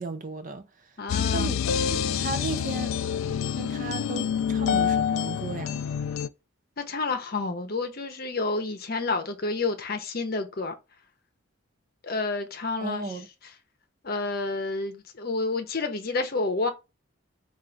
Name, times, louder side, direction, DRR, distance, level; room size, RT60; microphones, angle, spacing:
voice 1, 0.0-1.0 1.3-1.6 1.9-2.9 3.6-5.8 12.8-13.3, right 3 dB, 40° right, 0.5 m, -35 dB
voice 2, 1.0-1.5 6.8-10.7 12.0-13.2 14.0-16.7, left 3 dB, 45° left, 0.7 m, -29 dB
sound 1, 1.1-6.3, left 8 dB, 75° left, 0.3 m, -27 dB
4.5 x 2.5 x 3.8 m
head